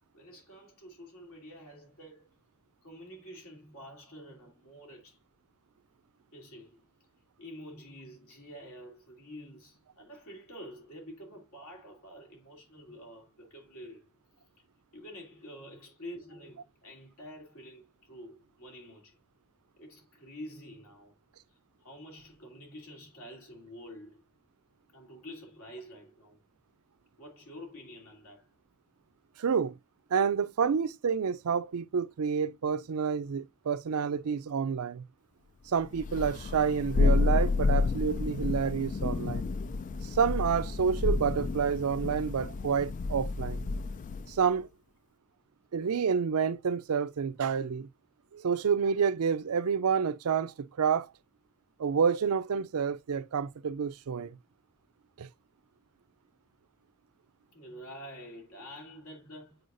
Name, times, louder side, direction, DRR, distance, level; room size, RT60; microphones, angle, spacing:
voice 1, 0.1-2.3 2.8-5.2 6.3-6.8 7.4-14.1 14.6-14.7 14.9-19.2 19.8-21.2 21.5-24.2 24.9-26.4 27.2-28.5 57.5-59.6, equal, 75° left, 2.9 m, -48 dB
voice 2, 29.4-29.7 30.1-35.0 35.7-39.5 40.1-43.6 44.3-44.7 45.7-47.9 48.3-51.1 51.8-54.4 55.2-55.3, right 6 dB, 85° right, 0.5 m, -29 dB
Thunder, 36.0-44.4, left 3 dB, 35° left, 0.3 m, -30 dB
7.9 x 4.7 x 2.5 m
head